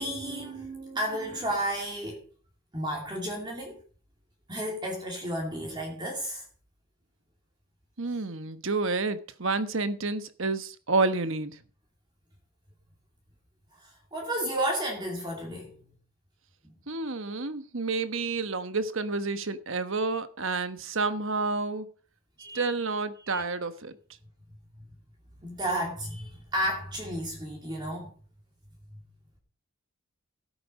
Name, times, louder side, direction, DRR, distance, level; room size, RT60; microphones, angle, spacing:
voice 1, 0.0-2.2 2.7-3.8 4.5-6.4 13.7-15.7 16.6-16.7 22.4-22.7 23.2-23.4 24.8-24.9 25.4-28.1, right 1 dB, 20° right, 2.4 m, -32 dB
voice 2, 8.0-11.6 16.9-21.9 22.5-23.9, right 3 dB, 65° right, 1.2 m, -29 dB
15.5 x 8.5 x 5.3 m
head